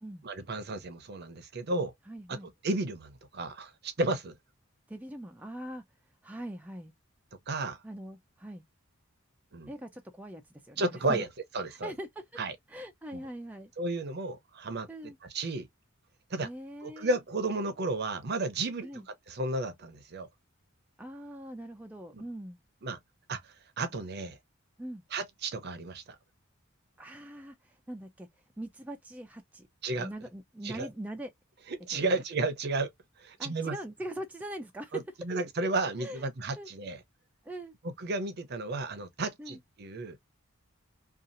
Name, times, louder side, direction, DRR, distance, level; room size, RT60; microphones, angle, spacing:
voice 1, 0.2-1.9 2.3-2.4 2.6-4.4 7.5-7.8 9.5-9.7 10.8-11.3 11.5-11.9 12.4-12.5 13.1-13.2 13.8-15.7 16.3-16.5 16.8-20.3 22.1-22.2 22.8-23.0 23.3-24.4 25.1-26.0 29.8-30.1 30.6-30.9 31.7-32.9 33.2-33.8 34.9-37.0 37.8-40.2, right 2 dB, 50° right, 0.6 m, -33 dB
voice 2, 2.1-2.5 4.9-5.8 6.2-6.9 7.8-8.6 9.7-11.2 11.7-12.4 12.7-13.7 14.9-15.2 16.4-17.2 18.8-19.1 21.0-22.6 24.8-25.0 27.0-28.3 28.6-29.7 29.9-31.3 31.9-32.2 33.4-35.0 36.0-36.3 36.6-36.7 37.4-37.7 39.4-39.6, right 1 dB, 5° right, 0.3 m, -42 dB
2.7 x 2.3 x 2.5 m
head